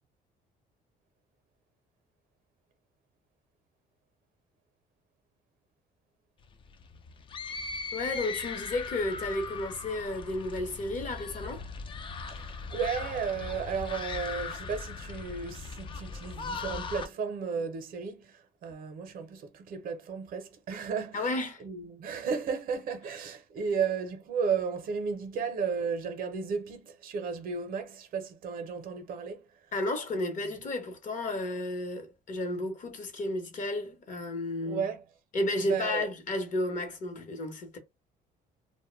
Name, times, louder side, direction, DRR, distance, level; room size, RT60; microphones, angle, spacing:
sound 1, 6.4-17.1, left 4 dB, 30° left, 0.3 m, -39 dB
voice 1, 7.9-11.7 21.1-21.6 29.7-34.9 35.3-37.8, left 2 dB, 50° left, 0.9 m, -32 dB
voice 2, 12.3-18.4 18.6-21.3 21.6-29.4 34.6-35.0 35.7-36.1, right 6 dB, 55° right, 0.6 m, -34 dB
2.1 x 2.1 x 3.1 m
cardioid pair, 110°, 17 cm